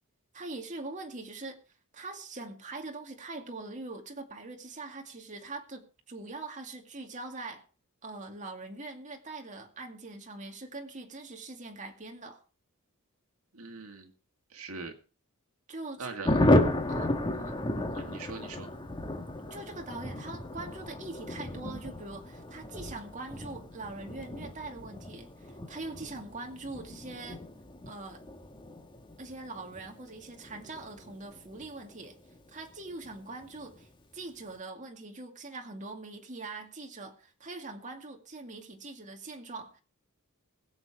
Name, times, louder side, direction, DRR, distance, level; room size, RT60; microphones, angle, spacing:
voice 1, 0.3-1.6 1.9-7.6 8.0-12.4 15.7-16.2 16.9-17.6 19.5-27.4 27.9-28.2 29.2-32.2 32.5-39.8, right 2 dB, 35° right, 2.2 m, -42 dB
voice 2, 13.5-14.1 14.5-14.9 16.0-16.4 17.9-18.7, right 4 dB, 70° right, 2.1 m, -41 dB
Thunder, 16.2-32.4 32.7-32.8 33.0-33.2 33.4-33.8, left 1 dB, 20° left, 1.7 m, -33 dB
21.5 x 7.4 x 4.9 m
head